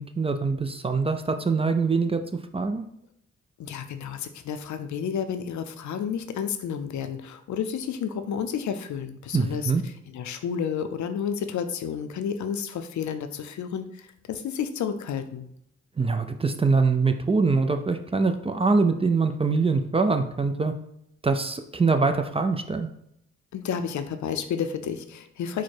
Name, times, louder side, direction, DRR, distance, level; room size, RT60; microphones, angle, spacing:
voice 1, 0.0-2.2 2.5-2.8 9.3-9.8 16.0-20.7 21.2-22.9, right 4 dB, 20° right, 7 dB, 0.4 m, -23 dB
voice 2, 3.6-9.7 10.1-13.9 14.3-15.5 23.5-25.6, left 7 dB, 75° left, 8 dB, 0.5 m, -31 dB
4.7 x 2.1 x 4.3 m, 0.75 s
cardioid pair, 70°, 29 cm